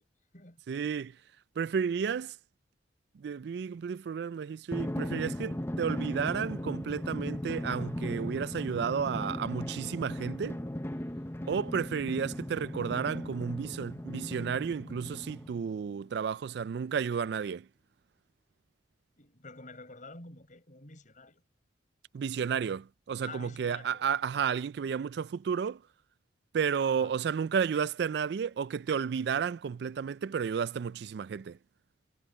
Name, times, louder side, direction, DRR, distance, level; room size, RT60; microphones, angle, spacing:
voice 1, 0.7-1.2 1.6-2.4 3.1-10.6 11.5-17.7 22.1-25.8 26.5-31.6, right 7 dB, 65° right, 0.3 m, -32 dB
Drum, 4.7-15.8, left 1 dB, 15° left, 0.8 m, -37 dB
voice 2, 19.2-21.4 23.3-24.1 26.9-27.2, left 3 dB, 45° left, 7.8 m, -49 dB
head